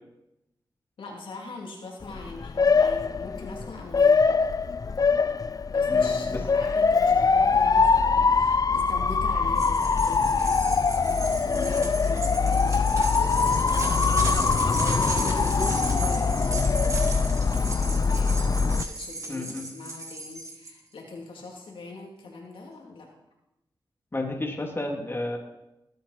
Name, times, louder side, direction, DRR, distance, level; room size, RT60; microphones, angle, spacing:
voice 1, 1.0-4.3 5.7-13.8 14.8-18.4 18.9-23.1, left 3 dB, 90° left, -1 dB, 2.9 m, -42 dB
Motor vehicle (road) / Siren, 2.0-18.8, left 4 dB, 45° left, 0.5 m, -23 dB
voice 2, 5.9-6.4 11.5-11.8 19.3-19.7 24.1-25.4, left 2 dB, 25° left, -1 dB, 2.7 m, -32 dB
sound 1, 9.5-20.7, right 2 dB, 35° right, 2.2 m, -35 dB
19.0 x 8.6 x 4.3 m, 0.90 s
cardioid pair, 75°, 9 cm